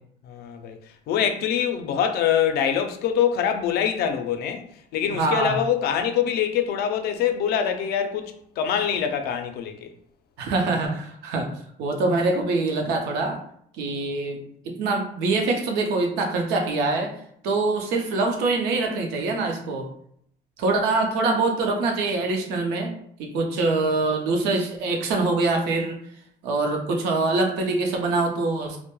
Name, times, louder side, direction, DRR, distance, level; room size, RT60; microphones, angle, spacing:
voice 1, 0.3-0.8 1.1-4.6 4.9-9.9, left 8 dB, 70° left, 0.4 m, -24 dB
voice 2, 5.1-5.6 10.4-11.5 11.8-13.4 13.8-14.4 14.6-17.1 17.4-19.9 20.6-22.9 23.2-26.0 26.4-28.8, right 3 dB, 90° right, 0.6 m, -24 dB
2.2 x 2.1 x 2.9 m
cardioid pair, 110°, 17 cm